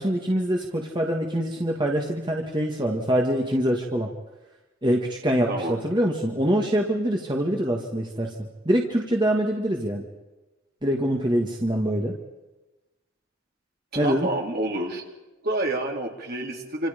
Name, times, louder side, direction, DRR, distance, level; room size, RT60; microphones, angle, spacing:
voice 1, 0.0-4.1 4.8-8.3 8.7-10.1 10.8-12.1 14.0-14.3, equal, 20° right, 0 dB, 1.9 m, -24 dB
voice 2, 13.9-15.0 15.4-16.9, right 1 dB, 50° right, 0 dB, 4.0 m, -28 dB
27.5 x 26.5 x 5.3 m, 1.1 s
head